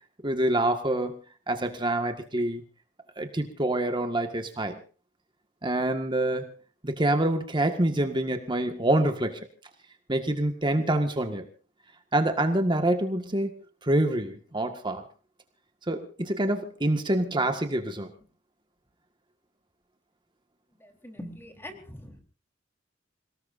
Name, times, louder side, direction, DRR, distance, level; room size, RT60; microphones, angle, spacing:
voice 1, 0.2-1.2 1.5-2.6 3.2-4.8 5.6-6.5 6.8-9.4 10.1-11.5 12.1-13.5 13.8-15.0 15.9-18.1, right 1 dB, 25° right, 6 dB, 1.7 m, -26 dB
voice 2, 20.8-22.2, equal, 15° left, 4 dB, 3.8 m, -43 dB
28.0 x 19.0 x 2.6 m, 0.36 s
head